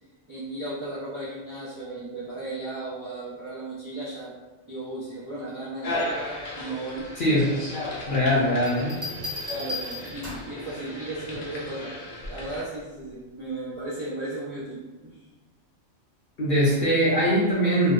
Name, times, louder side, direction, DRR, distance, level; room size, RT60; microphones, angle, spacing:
voice 1, 0.3-4.3 4.7-6.2 6.5-7.1 8.8-8.9 9.5-11.9 12.3-15.2, right 2 dB, 50° right, -10 dB, 0.3 m, -35 dB
sound 1, 5.8-12.6, left 1 dB, 75° left, 0.9 m, -35 dB
voice 2, 7.2-7.6 8.1-9.0 16.4-17.9, equal, 60° left, -7 dB, 0.6 m, -22 dB
sound 2, 8.7-10.6 12.2-12.6, left 2 dB, 35° right, 0.9 m, -35 dB
2.7 x 2.0 x 2.3 m, 1.2 s
omnidirectional pair, 1.3 m